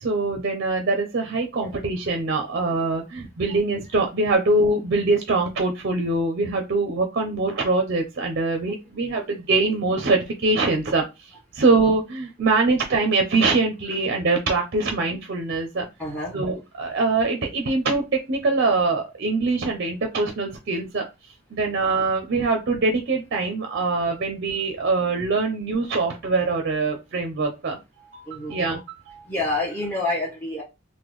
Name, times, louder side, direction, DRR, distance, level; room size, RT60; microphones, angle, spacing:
voice 1, 0.0-15.9 16.3-21.1 21.5-29.3, right 3 dB, 50° right, 4 dB, 0.5 m, -23 dB
voice 2, 16.0-16.4 28.3-28.6 29.2-30.6, left 2 dB, 10° left, -3 dB, 0.8 m, -28 dB
3.6 x 2.2 x 3.0 m, 0.25 s
head